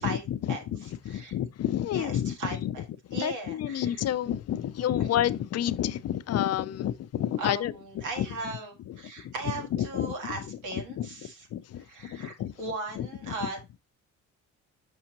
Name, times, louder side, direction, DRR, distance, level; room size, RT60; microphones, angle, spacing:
voice 1, 0.0-2.8 3.1-8.3 8.9-9.0 9.2-9.3 9.7-10.1 10.5-11.1 11.5-12.5 13.0-13.1 13.4-13.5, left 11 dB, 55° left, 0.5 m, -30 dB
voice 2, 1.9-2.8 3.1-4.0 7.4-11.5 11.9-13.8, right 3 dB, 80° right, 2.1 m, -38 dB
5.9 x 5.5 x 2.9 m
cardioid pair, 90°, 30 cm